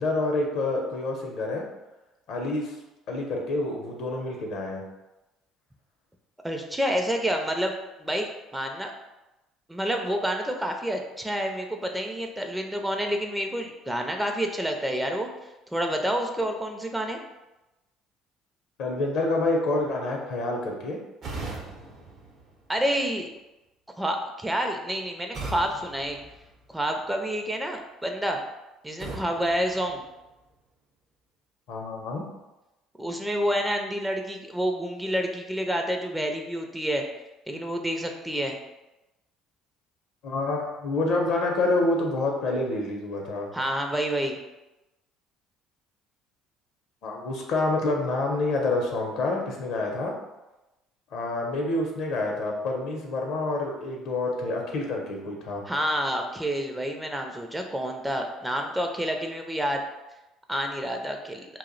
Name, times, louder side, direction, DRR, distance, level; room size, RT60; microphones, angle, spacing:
voice 1, 0.0-1.6 2.3-2.7 3.1-4.8 18.8-21.0 31.7-32.2 40.2-43.5 47.0-50.1 51.1-55.6, left 2 dB, 65° left, 1 dB, 0.6 m, -27 dB
voice 2, 6.4-7.7 8.0-8.9 9.7-15.3 15.7-17.2 22.7-23.3 24.0-26.2 26.7-28.4 28.8-30.0 33.0-37.0 37.5-38.6 43.5-44.4 55.7-59.8 60.5-61.5, equal, 10° right, 3 dB, 0.4 m, -28 dB
sound 1, 21.2-23.2 25.3-27.0 29.0-30.6, right 3 dB, 50° right, 0.7 m, -40 dB
2.5 x 2.0 x 3.8 m, 1.0 s
hypercardioid pair, 60°, 0 cm